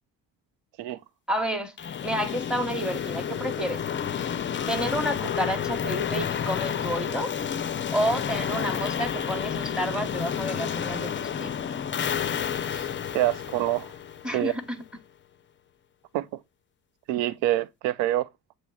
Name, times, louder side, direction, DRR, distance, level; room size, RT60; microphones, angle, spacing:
voice 1, 1.3-1.7 2.0-3.8 4.7-7.3 7.9-11.5 14.2-14.8, equal, ahead, 0.9 m, -30 dB
sound 1, 1.8-14.6, left 8 dB, 30° left, 0.4 m, -30 dB
voice 2, 13.1-13.9 14.3-14.5 16.1-16.4 17.1-18.3, right 14 dB, 85° right, 0.5 m, -26 dB
7.0 x 3.1 x 2.2 m
supercardioid pair, 65°, 43 cm